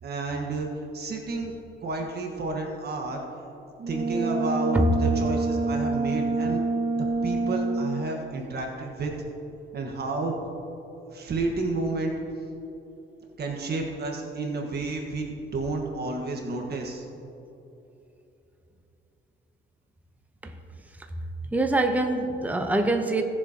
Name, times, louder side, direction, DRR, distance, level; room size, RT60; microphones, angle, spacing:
voice 1, 0.0-0.7 0.9-1.5 1.8-3.2 3.9-6.6 7.2-9.1 9.7-10.4 11.1-12.1 13.4-17.0, right 3 dB, 55° right, 1 dB, 1.4 m, -31 dB
Brass instrument, 3.8-8.2, right 3 dB, 35° right, 0.8 m, -27 dB
voice 2, 21.5-23.2, right 1 dB, 10° right, 5 dB, 0.9 m, -24 dB
17.5 x 7.2 x 2.9 m, 2.9 s
cardioid pair, 90°, 20 cm